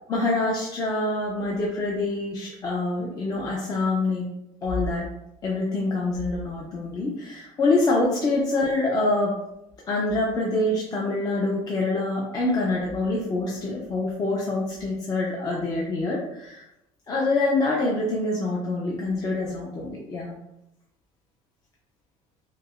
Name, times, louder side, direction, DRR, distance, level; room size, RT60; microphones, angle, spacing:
voice 1, 0.1-4.3 4.6-5.1 5.4-9.4 9.9-16.6 17.1-20.4, left 2 dB, 25° left, -4 dB, 0.5 m, -25 dB
4.5 x 2.0 x 2.4 m, 0.88 s
cardioid pair, 130°, 14 cm